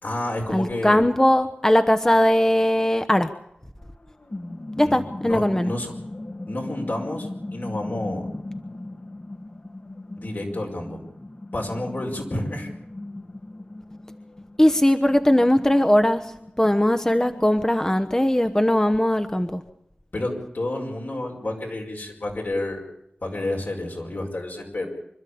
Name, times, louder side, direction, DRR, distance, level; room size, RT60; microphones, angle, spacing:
voice 1, 0.0-1.0 4.8-6.0 6.5-8.3 10.2-11.0 11.5-12.7 20.1-22.8 23.2-24.9, left 1 dB, 70° left, 0 dB, 5.2 m, -30 dB
voice 2, 0.5-3.3 4.8-5.7 14.6-16.2 16.6-19.6, left 1 dB, 15° left, 8 dB, 1.0 m, -19 dB
sound 1, 3.8-18.1, left 2 dB, 45° left, 1.6 m, -38 dB
26.0 x 12.5 x 8.5 m, 0.80 s
wide cardioid pair, 45°, 3 cm